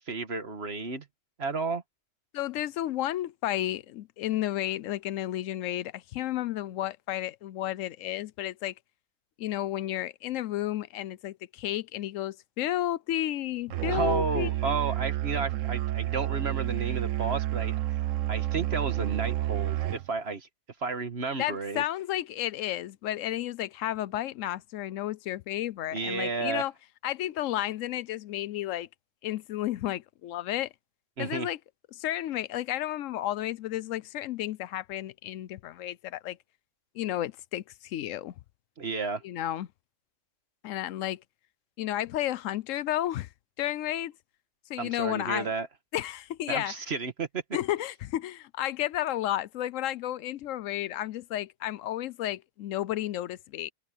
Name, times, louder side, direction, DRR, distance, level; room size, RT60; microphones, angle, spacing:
voice 1, 0.1-1.1 1.4-1.8 13.9-17.8 18.3-20.5 20.8-21.8 25.9-26.6 31.2-31.5 38.8-39.2 44.8-45.7 46.5-47.4, right 4 dB, 55° right, 1.8 m, -32 dB
voice 2, 2.3-8.7 9.4-14.7 21.4-26.7 27.0-28.9 29.2-30.7 31.2-31.6 31.9-36.4 36.9-38.3 39.2-39.7 40.6-41.2 41.8-43.3 43.6-44.1 44.7-45.5 45.9-46.7 47.5-53.7, left 13 dB, 90° left, 1.0 m, -32 dB
Musical instrument, 13.7-20.1, right 14 dB, 85° right, 1.1 m, -30 dB
omnidirectional pair, 1.3 m